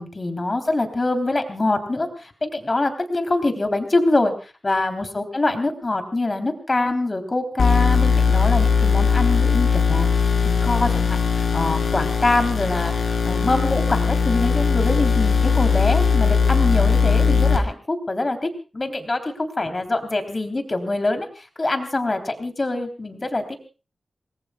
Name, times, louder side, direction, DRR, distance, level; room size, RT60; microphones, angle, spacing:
voice 1, 0.0-10.3 10.6-12.9 13.2-21.3 21.6-23.6, left 2 dB, 25° left, 6 dB, 3.5 m, -24 dB
sound 1, 7.6-17.6, left 5 dB, 75° left, 4.1 m, -19 dB
28.5 x 21.0 x 2.3 m, 0.34 s
wide cardioid pair, 145°, 0 cm